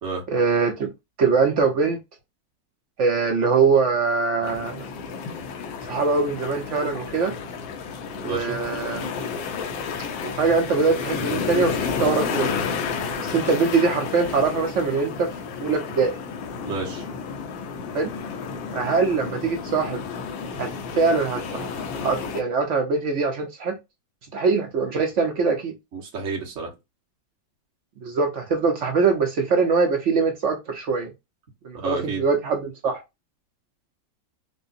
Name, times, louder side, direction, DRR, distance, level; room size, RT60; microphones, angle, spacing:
voice 1, 0.3-0.9 1.2-2.0 3.0-4.8 5.9-7.3 8.1-9.2 10.2-12.5 13.2-15.3 15.6-16.1 17.9-18.1 18.7-20.0 20.6-20.7 21.0-23.8 24.3-25.7 28.0-31.1 31.6-33.0, right 4 dB, 65° right, 0.7 m, -22 dB
sound 1, 4.4-22.4, left 5 dB, 85° left, 1.4 m, -31 dB
voice 2, 8.2-8.6 16.6-17.0 25.9-26.7 31.7-32.2, right 4 dB, 45° right, 1.4 m, -30 dB
5.2 x 2.0 x 2.5 m
omnidirectional pair, 2.0 m